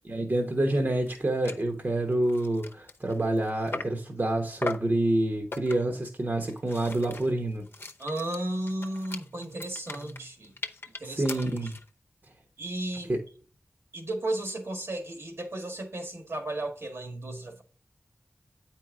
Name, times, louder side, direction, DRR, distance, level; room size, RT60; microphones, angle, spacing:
voice 1, 0.0-7.7 11.0-11.8 13.1-13.2, right 1 dB, 50° right, 1.1 m, -27 dB
sound 1, 0.8-0.9 1.1-1.2 1.4-1.7 2.1-4.1 4.6-5.0 5.5-6.0 6.5-11.9, left 3 dB, 55° left, 0.8 m, -40 dB
voice 2, 8.0-10.5 10.9-11.2 11.6-11.7 12.6-13.1 13.9-17.6, right 1 dB, 70° right, 1.8 m, -34 dB
8.5 x 4.6 x 3.7 m
wide cardioid pair, 50°, 5 cm